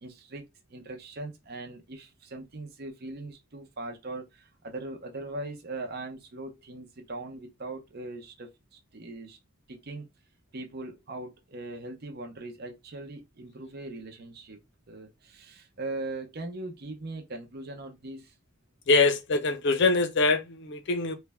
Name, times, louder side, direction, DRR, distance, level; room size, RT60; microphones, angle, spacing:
voice 1, 0.0-8.5 8.9-9.4 9.7-10.1 10.5-14.6 14.9-18.3, right 2 dB, 50° right, 0.7 m, -40 dB
voice 2, 18.9-21.2, left 3 dB, 60° left, 0.6 m, -24 dB
3.2 x 2.2 x 3.3 m
head